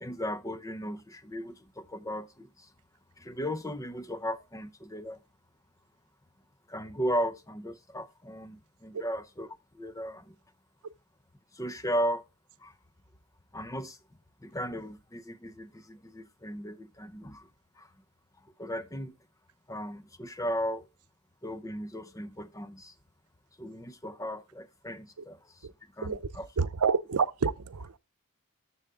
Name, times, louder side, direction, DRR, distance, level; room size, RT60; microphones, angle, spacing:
voice 1, 0.0-2.7 3.2-5.2 6.7-9.5 9.7-10.3 11.5-12.2 12.6-12.7 13.5-14.0 14.4-17.5 17.8-17.9 18.6-19.1 19.7-20.9 21.4-22.9 23.6-25.4 26.0-26.5, equal, 15° left, 0.8 m, -36 dB
voice 2, 26.6-28.0, right 5 dB, 90° right, 0.7 m, -28 dB
10.5 x 7.1 x 3.7 m
head